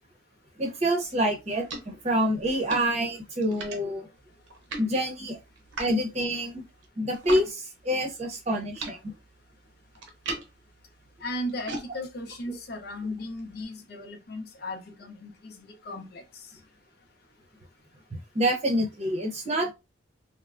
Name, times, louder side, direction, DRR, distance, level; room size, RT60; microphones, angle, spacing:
voice 1, 0.6-4.1 4.8-5.4 5.8-6.6 7.0-9.0 18.3-19.7, equal, 35° right, 0.7 m, -27 dB
sound 1, 1.0-7.5 7.8-13.6, right 2 dB, 70° right, 0.7 m, -42 dB
voice 2, 11.2-16.2, left 1 dB, 55° left, 0.6 m, -36 dB
3.3 x 2.0 x 2.4 m
head